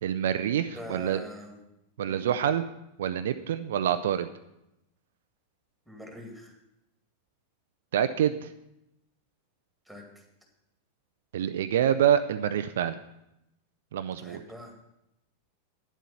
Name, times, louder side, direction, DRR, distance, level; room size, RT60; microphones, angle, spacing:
voice 1, 0.0-1.2 2.0-2.6 3.0-4.3 7.9-8.5 11.3-13.0 13.9-14.4, right 10 dB, 60° right, 10 dB, 0.4 m, -26 dB
voice 2, 0.7-1.6 2.1-2.3 5.9-6.5 9.9-10.2 14.2-14.7, equal, ahead, 2 dB, 2.3 m, -44 dB
9.2 x 7.6 x 5.7 m, 0.86 s
figure-of-eight pair, 90°, 0 cm